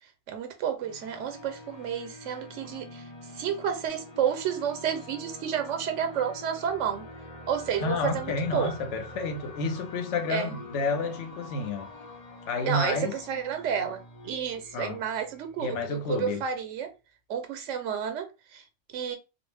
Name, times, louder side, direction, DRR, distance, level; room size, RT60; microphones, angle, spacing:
voice 1, 0.0-7.1 7.5-8.7 10.3-10.6 12.6-16.9 17.3-19.2, right 8 dB, 85° right, 1.0 m, -31 dB
sound 1, 0.8-16.1, left 1 dB, 40° left, 0.6 m, -46 dB
voice 2, 7.8-11.9 12.5-13.1 14.7-15.0 15.6-16.4, left 3 dB, 80° left, 0.9 m, -30 dB
2.4 x 2.0 x 3.1 m
omnidirectional pair, 1.2 m